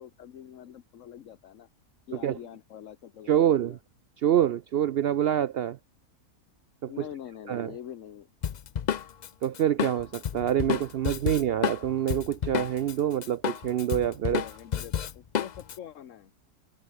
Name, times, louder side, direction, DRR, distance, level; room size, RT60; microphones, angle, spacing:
voice 1, 0.0-1.7 2.1-3.8 6.9-8.3 14.3-16.3, left 10 dB, 60° left, 1.2 m, -44 dB
voice 2, 3.3-3.8 4.2-5.8 6.8-7.0 7.5-7.7 9.4-14.4, right 10 dB, 80° right, 0.5 m, -26 dB
Drum kit, 8.4-12.9 13.2-15.8, left 8 dB, 85° left, 0.3 m, -30 dB
omnidirectional pair, 1.6 m